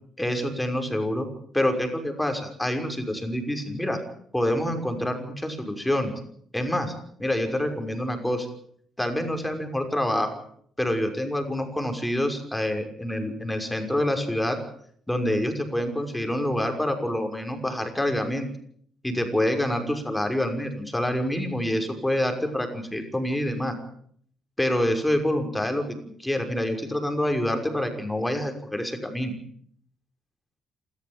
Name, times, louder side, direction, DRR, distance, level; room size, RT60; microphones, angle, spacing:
voice 1, 0.2-1.3 1.5-4.0 4.3-6.1 6.5-6.9 7.2-8.5 9.0-10.4 10.8-14.6 15.1-18.5 19.0-23.8 24.6-25.8 26.2-29.3, left 1 dB, 5° left, 5 dB, 6.0 m, -26 dB
28.0 x 14.0 x 9.1 m, 0.64 s
cardioid pair, 90°, 0 cm